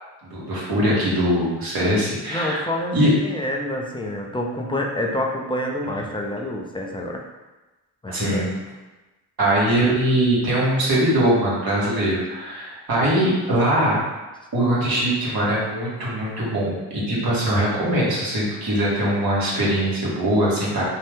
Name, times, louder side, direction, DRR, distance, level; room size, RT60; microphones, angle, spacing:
voice 1, 0.2-2.6 2.9-3.1 8.1-8.5 9.4-14.0 14.5-20.8, right 1 dB, 45° right, -6 dB, 1.3 m, -21 dB
voice 2, 2.3-7.2 8.0-8.6, left 1 dB, 10° left, 0 dB, 0.3 m, -27 dB
2.6 x 2.1 x 3.4 m, 1.1 s
hypercardioid pair, 40°, 50 cm